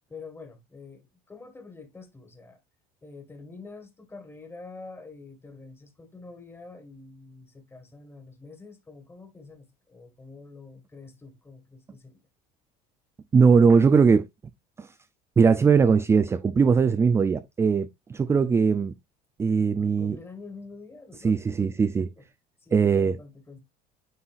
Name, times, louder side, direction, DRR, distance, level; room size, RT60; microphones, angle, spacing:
voice 1, 0.1-2.6 3.0-12.3 19.8-22.3 22.6-23.6, left 4 dB, 15° left, 1.7 m, -46 dB
voice 2, 13.3-14.3 14.8-14.9 15.4-18.9 19.4-20.2 21.2-22.1 22.7-23.2, right 5 dB, 15° right, 0.3 m, -20 dB
9.6 x 4.0 x 2.5 m
cardioid pair, 145°, 18 cm